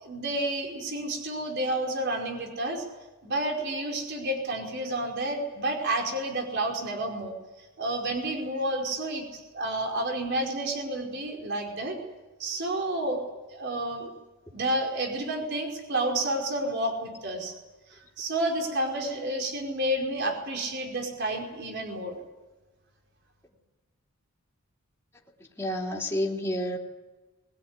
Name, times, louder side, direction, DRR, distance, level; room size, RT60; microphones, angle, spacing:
voice 1, 0.0-2.8 3.2-7.3 7.8-12.0 12.4-14.1 14.5-17.5 17.9-22.2, right 1 dB, 50° right, 1 dB, 5.0 m, -30 dB
voice 2, 25.6-26.8, left 1 dB, 10° left, -3 dB, 3.3 m, -29 dB
22.0 x 21.0 x 9.8 m, 1.1 s
head